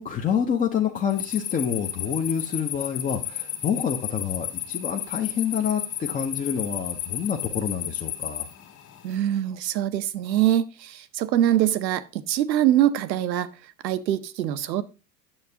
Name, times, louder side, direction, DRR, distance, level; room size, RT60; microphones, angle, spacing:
voice 1, 0.0-8.5, left 7 dB, 15° left, 0.5 m, -27 dB
sound 1, 1.1-9.2, left 10 dB, 40° left, 1.9 m, -33 dB
voice 2, 9.0-13.5 13.8-14.8, right 12 dB, 90° right, 0.7 m, -23 dB
8.8 x 6.6 x 2.7 m
hypercardioid pair, 100°, 50 cm